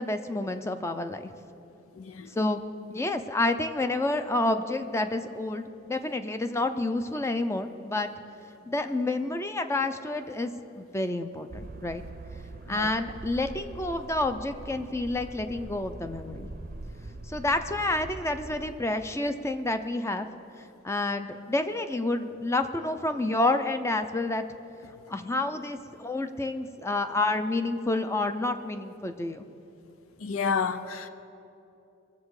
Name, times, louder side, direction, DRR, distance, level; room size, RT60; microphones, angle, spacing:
voice 1, 0.0-1.3 2.3-2.6 2.9-8.1 8.7-10.5 10.8-12.0 12.7-16.5 17.3-20.3 20.8-24.4 25.1-29.4, left 2 dB, 15° left, 0.5 m, -29 dB
voice 2, 2.0-2.3 12.7-12.9 30.2-31.1, left 5 dB, 90° left, 0.6 m, -30 dB
sound 1, 11.5-18.7, right 2 dB, 45° right, 0.6 m, -43 dB
21.5 x 7.3 x 4.8 m
head